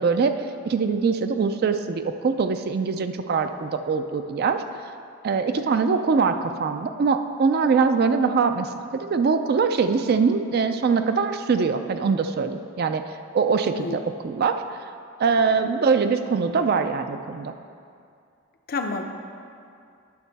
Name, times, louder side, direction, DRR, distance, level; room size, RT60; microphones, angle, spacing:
voice 1, 0.0-4.6 5.2-8.7 9.0-14.8 15.2-17.5, right 5 dB, 50° right, 8 dB, 0.3 m, -23 dB
voice 2, 18.7-19.0, left 3 dB, 45° left, 5 dB, 0.6 m, -29 dB
9.5 x 6.1 x 4.0 m, 2.4 s
head